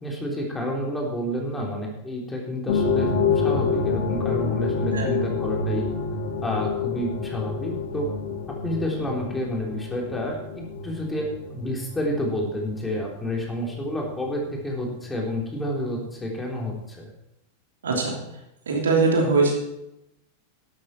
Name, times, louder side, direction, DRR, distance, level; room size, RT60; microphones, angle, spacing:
voice 1, 0.0-5.9 6.4-8.1 8.6-17.1, left 1 dB, 10° left, -1 dB, 3.6 m, -29 dB
sound 1, 2.7-15.3 15.5-15.6 16.3-16.4, left 5 dB, 55° left, 2.1 m, -28 dB
voice 2, 17.8-18.1 18.7-19.5, right 3 dB, 65° right, 0 dB, 3.2 m, -21 dB
12.5 x 12.0 x 4.4 m, 0.87 s
figure-of-eight pair, 90°, 0 cm